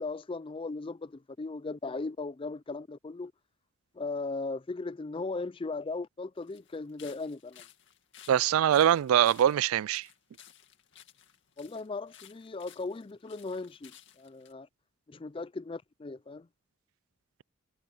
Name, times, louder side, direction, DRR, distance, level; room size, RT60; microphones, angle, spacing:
voice 1, 0.0-3.3 4.0-7.6 11.6-14.7 15.1-16.5, left 3 dB, 25° left, 0.4 m, -37 dB
sound 1, 6.4-14.5, left 10 dB, 60° left, 2.3 m, -56 dB
voice 2, 8.3-10.1, right 10 dB, 85° right, 0.3 m, -23 dB
head